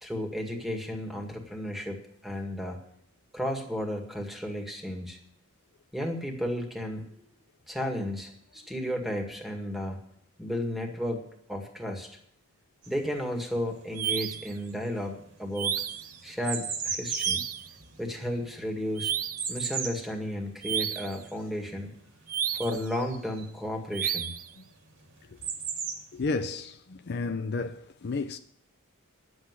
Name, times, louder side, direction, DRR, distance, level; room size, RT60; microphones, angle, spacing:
voice 1, 0.0-2.8 3.3-5.2 5.9-7.2 7.7-10.0 10.4-12.1 12.9-15.7 16.2-17.4 18.0-19.2 19.5-21.9 22.6-24.3, equal, ahead, 1.9 m, -33 dB
sound 1, 12.8-14.0 14.3-23.6 24.7-24.8 25.0-26.5, right 6 dB, 55° right, 2.2 m, -37 dB
sound 2, 14.0-14.5 15.6-16.1 17.1-17.7 19.0-19.5 20.6-21.2 22.3-22.9 23.9-24.5, right 9 dB, 40° right, 0.5 m, -31 dB
voice 2, 26.1-28.4, left 3 dB, 50° left, 0.5 m, -32 dB
10.5 x 7.9 x 9.6 m
head